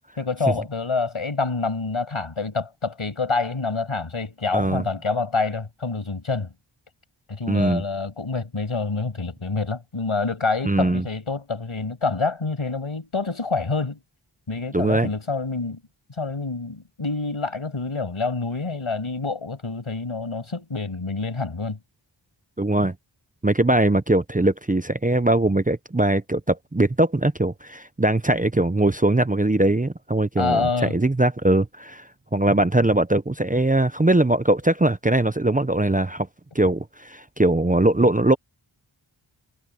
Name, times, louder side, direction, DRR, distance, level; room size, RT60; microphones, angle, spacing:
voice 1, 0.2-6.5 7.3-14.0 14.5-15.8 16.2-21.8 30.4-31.0, left 4 dB, 75° left, 6.5 m, -27 dB
voice 2, 4.5-4.8 7.5-7.8 10.6-11.0 14.7-15.1 22.6-22.9 23.4-36.3 36.5-38.4, right 2 dB, 15° right, 0.7 m, -21 dB
wide cardioid pair, 55°, 49 cm